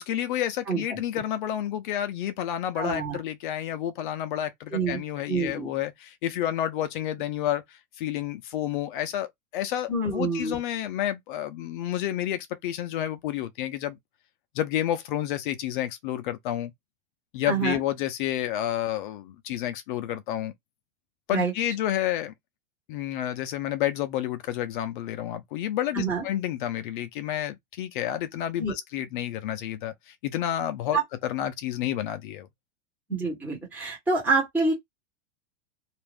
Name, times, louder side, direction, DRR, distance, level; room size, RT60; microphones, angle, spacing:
voice 1, 0.0-14.0 14.5-16.7 17.3-20.5 21.3-22.3 22.9-32.5, left 12 dB, 45° left, 0.5 m, -30 dB
voice 2, 0.7-1.0 2.8-3.2 4.7-5.0 5.3-5.7 9.9-10.6 17.5-17.8 21.3-21.5 25.9-26.2 28.6-28.7 30.9-31.0 33.1-34.7, right 3 dB, 5° right, 1.1 m, -27 dB
2.5 x 2.2 x 3.3 m
supercardioid pair, 170°, 36 cm